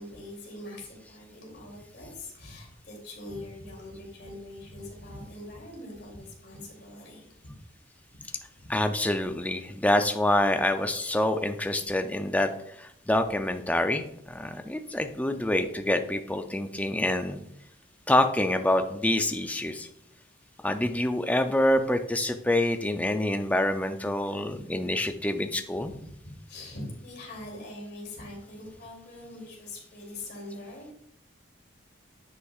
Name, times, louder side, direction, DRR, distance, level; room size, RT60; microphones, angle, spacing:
voice 1, 0.0-7.5 8.6-8.9 24.5-24.9 25.7-30.9, left 1 dB, 55° left, -2 dB, 2.8 m, -43 dB
voice 2, 8.7-12.5 12.8-17.4 18.1-19.9 20.6-25.9, left 1 dB, 5° left, 7 dB, 0.4 m, -26 dB
9.7 x 5.7 x 2.4 m, 0.76 s
head